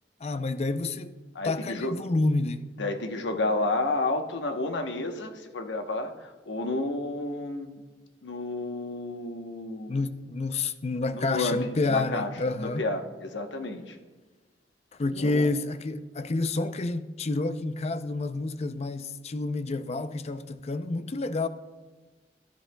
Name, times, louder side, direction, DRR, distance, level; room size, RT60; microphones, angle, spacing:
voice 1, 0.2-1.1 1.4-2.7 9.9-12.8 15.0-21.5, left 3 dB, 35° left, 0.5 m, -29 dB
voice 2, 1.3-2.0 2.8-7.7 8.2-10.0 11.1-11.6 11.9-12.3 12.6-14.0 15.1-15.4, left 2 dB, 85° left, 1.0 m, -31 dB
18.0 x 10.5 x 2.2 m
head